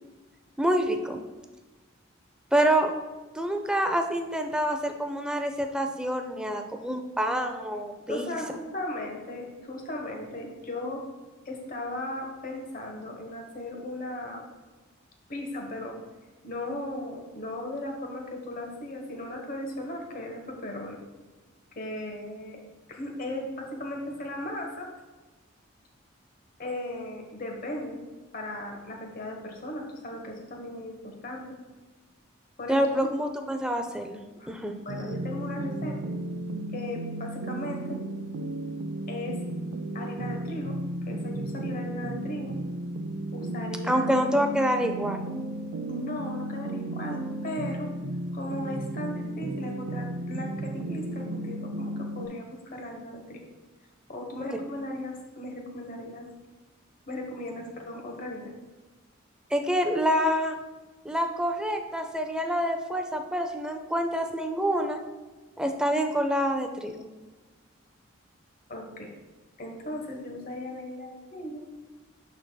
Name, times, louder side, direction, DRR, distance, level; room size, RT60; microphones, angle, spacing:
voice 1, 0.6-1.2 2.5-2.9 3.4-8.3 32.7-34.2 34.5-34.7 43.8-45.3 59.5-60.6 61.0-65.0 65.6-67.1, equal, 5° right, 5 dB, 0.4 m, -27 dB
voice 2, 8.1-11.0 11.4-14.4 15.3-16.0 16.4-21.0 21.7-22.6 22.9-24.9 26.6-28.0 28.3-31.6 32.6-33.1 34.4-34.5 34.8-36.0 36.7-38.0 39.1-39.4 39.9-40.8 41.1-42.5 43.3-44.0 45.9-47.9 48.3-53.4 54.1-56.2 57.1-58.6 68.7-69.1 69.6-71.6, left 1 dB, 45° left, 2 dB, 1.1 m, -37 dB
sound 1, 34.9-52.3, right 1 dB, 65° right, 0.5 m, -34 dB
12.0 x 4.0 x 2.2 m, 1.3 s
head